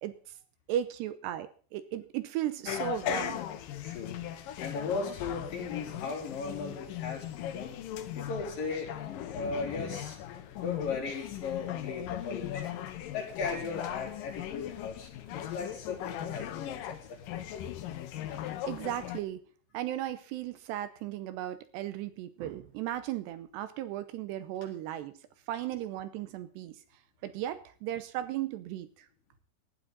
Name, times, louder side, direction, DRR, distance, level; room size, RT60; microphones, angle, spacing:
voice 1, 0.7-3.4 18.3-18.4 18.6-19.4 19.7-25.2 25.5-26.8 27.2-29.1, right 12 dB, 80° right, 13 dB, 2.8 m, -36 dB
sound 1, 2.6-19.2, left 11 dB, 70° left, 2.2 m, -38 dB
voice 2, 3.8-4.2 4.6-7.8 8.2-10.2 10.6-12.8 13.1-17.5, left 4 dB, 50° left, -2 dB, 5.6 m, -37 dB
18.0 x 12.5 x 4.0 m, 0.41 s
omnidirectional pair, 5.1 m